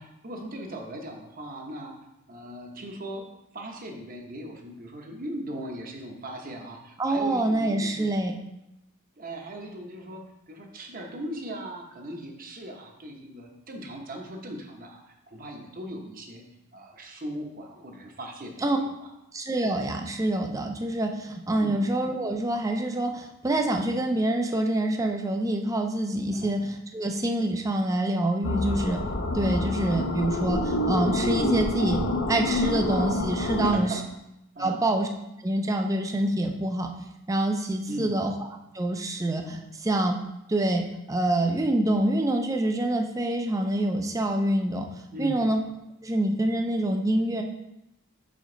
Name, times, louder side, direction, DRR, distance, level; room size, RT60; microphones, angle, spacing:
voice 1, 0.0-1.9 2.3-3.2 3.5-8.1 9.2-16.4 16.7-19.1 21.5-21.8 26.3-26.5 33.6-34.0 34.5-34.8 37.9-38.2 45.1-45.5, right 1 dB, 40° right, 2 dB, 0.9 m, -38 dB
voice 2, 7.0-8.3 18.6-18.8 19.3-29.0 29.3-34.0 34.6-35.1 35.4-36.9 37.3-38.3 38.7-40.2 40.5-44.9 45.2-45.6 46.0-47.4, right 1 dB, 15° right, 3 dB, 0.4 m, -26 dB
sound 1, 28.4-33.7, left 1 dB, 50° left, 0.6 m, -27 dB
5.2 x 5.1 x 3.9 m, 0.88 s
head